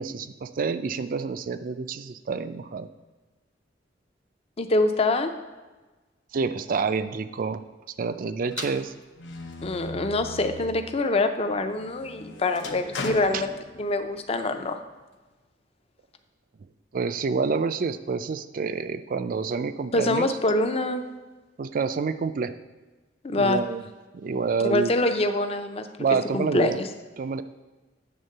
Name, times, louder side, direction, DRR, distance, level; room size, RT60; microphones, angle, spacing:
voice 1, 0.0-2.9 6.3-7.6 8.0-8.9 13.3-13.4 16.9-20.3 21.6-22.5 23.3-23.8 24.1-24.9 26.0-26.8 27.2-27.4, right 5 dB, 50° right, 12 dB, 0.4 m, -28 dB
voice 2, 4.6-5.3 9.6-13.5 13.8-14.8 19.9-21.0 23.2-23.6 24.6-25.9 26.3-26.9, left 2 dB, 35° left, 8 dB, 0.5 m, -25 dB
sound 1, 8.5-10.9 11.3-14.2, left 2 dB, 75° left, 0.8 m, -38 dB
8.8 x 3.6 x 6.6 m, 1.2 s
head